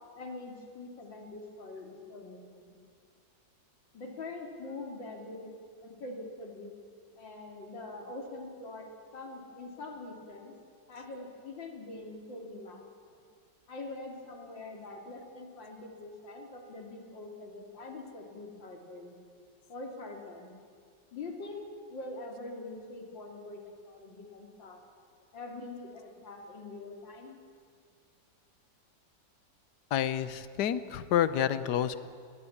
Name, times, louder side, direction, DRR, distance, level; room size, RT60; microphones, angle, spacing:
voice 1, 0.2-2.8 3.9-5.5 5.8-6.8 7.1-10.5 10.9-12.8 13.7-19.1 19.7-20.5 21.1-21.6 21.9-24.8 25.3-27.4, left 2 dB, 90° left, 2 dB, 3.5 m, -44 dB
voice 2, 29.9-32.0, left 10 dB, 70° left, 14 dB, 1.4 m, -29 dB
20.5 x 18.5 x 8.6 m, 2.1 s
omnidirectional pair, 2.0 m